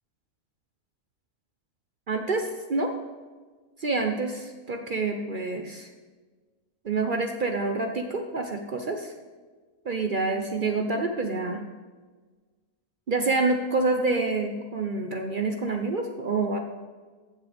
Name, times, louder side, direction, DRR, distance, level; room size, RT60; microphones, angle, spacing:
voice 1, 2.1-2.9 3.8-5.9 6.8-9.1 9.8-11.6 13.1-16.6, right 3 dB, 50° right, 4 dB, 0.6 m, -27 dB
14.0 x 7.4 x 3.4 m, 1.4 s
omnidirectional pair, 1.6 m